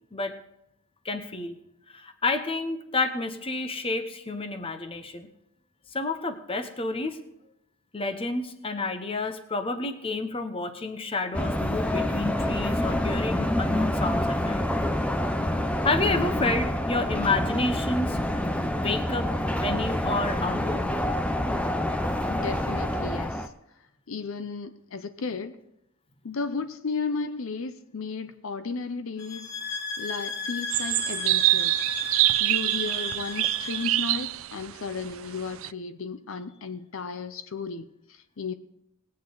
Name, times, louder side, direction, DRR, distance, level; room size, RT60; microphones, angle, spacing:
voice 1, 1.0-1.6 1.9-5.3 5.9-7.2 7.9-14.6 15.8-18.2 18.7-19.3 19.6-20.8, left 3 dB, 25° left, 0.9 m, -30 dB
sound 1, 11.3-23.5, left 1 dB, 5° left, 0.5 m, -27 dB
voice 2, 22.3-23.5 24.1-25.6 26.2-31.8 32.4-38.5, left 4 dB, 70° left, 0.6 m, -34 dB
sound 2, 29.2-34.2, left 4 dB, 55° left, 2.3 m, -36 dB
sound 3, 30.7-35.7, right 17 dB, 70° right, 0.4 m, -25 dB
20.0 x 8.7 x 3.9 m
head